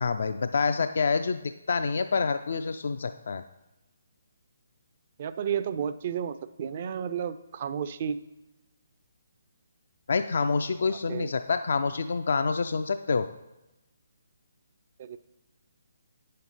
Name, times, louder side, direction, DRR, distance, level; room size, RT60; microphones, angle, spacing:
voice 1, 0.0-3.4 10.1-13.3, left 4 dB, 55° left, 9 dB, 0.3 m, -27 dB
voice 2, 5.2-8.2 10.9-11.3 15.0-15.2, right 8 dB, 40° right, 12 dB, 0.4 m, -32 dB
9.1 x 6.4 x 3.9 m, 1.0 s
figure-of-eight pair, 140°, 0 cm